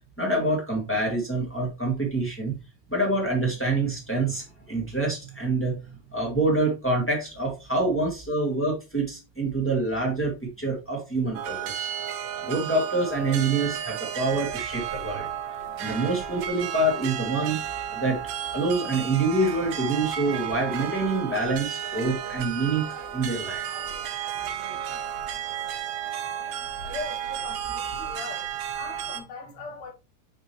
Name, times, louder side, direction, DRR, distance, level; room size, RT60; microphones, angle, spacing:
voice 1, 0.2-2.5 2.9-5.7 6.1-11.9 12.4-15.3 15.8-17.6 17.9-18.2 18.5-22.9 23.1-23.6, right 2 dB, 5° left, 1.3 m, -26 dB
sound 1, 11.3-29.2, right 9 dB, 70° right, 1.8 m, -33 dB
voice 2, 26.8-29.9, left 3 dB, 40° left, 1.7 m, -39 dB
6.6 x 5.0 x 3.1 m
omnidirectional pair, 3.8 m